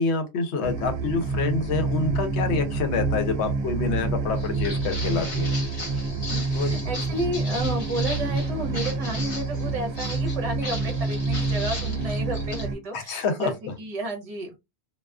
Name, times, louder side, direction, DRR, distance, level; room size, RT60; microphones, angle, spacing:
voice 1, 0.0-5.6 6.5-6.7 12.9-13.5, left 4 dB, 80° left, 0.9 m, -27 dB
sound 1, 0.6-12.7, right 3 dB, 70° right, 0.8 m, -27 dB
Walk footsteps, 4.3-12.7, left 2 dB, 55° left, 1.0 m, -37 dB
voice 2, 6.3-14.5, right 1 dB, 35° right, 0.8 m, -32 dB
2.3 x 2.3 x 2.3 m
omnidirectional pair, 1.1 m